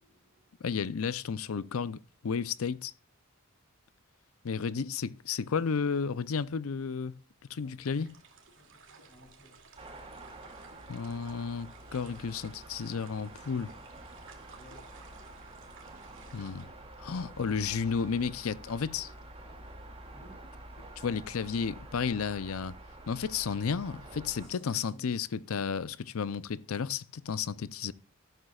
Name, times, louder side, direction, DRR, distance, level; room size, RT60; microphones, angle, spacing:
voice 1, 0.0-0.6 7.6-8.1 8.5-9.6 14.2-14.9 16.5-17.6 20.1-20.4 24.4-25.2, equal, 5° left, 7.0 m, -58 dB
voice 2, 0.6-2.9 4.4-7.1 7.5-8.1 10.9-13.7 16.3-16.6 17.0-19.1 21.0-22.7 23.1-27.9, left 6 dB, 80° left, 0.5 m, -32 dB
sound 1, 7.8-16.7, right 5 dB, 65° right, 2.4 m, -56 dB
sound 2, 9.8-24.5, right 2 dB, 30° right, 2.4 m, -48 dB
12.5 x 12.5 x 2.4 m
head